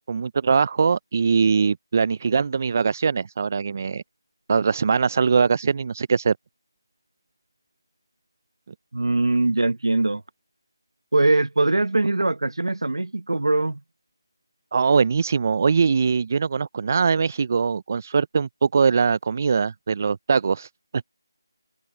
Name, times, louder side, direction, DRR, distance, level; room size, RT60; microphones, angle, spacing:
voice 1, 0.1-4.0 4.5-6.4 14.7-20.7, right 5 dB, 35° right, 0.4 m, -21 dB
voice 2, 8.9-10.2 11.1-13.8, right 2 dB, 90° right, 0.9 m, -22 dB
open air
figure-of-eight pair, 170°, 2 cm